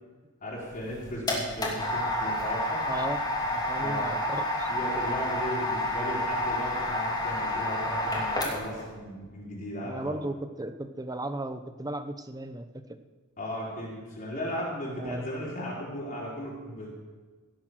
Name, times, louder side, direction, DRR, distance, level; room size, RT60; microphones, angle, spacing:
voice 1, 0.4-2.8 3.8-4.1 4.7-10.2 13.4-16.9, equal, 40° left, -7 dB, 4.3 m, -36 dB
sound 1, 0.7-8.8, left 1 dB, 20° left, 3.0 m, -29 dB
voice 2, 2.9-3.2 3.5-4.7 9.8-12.8 15.0-15.2, right 1 dB, 15° right, 9 dB, 0.8 m, -35 dB
17.0 x 8.2 x 6.4 m, 1.4 s
head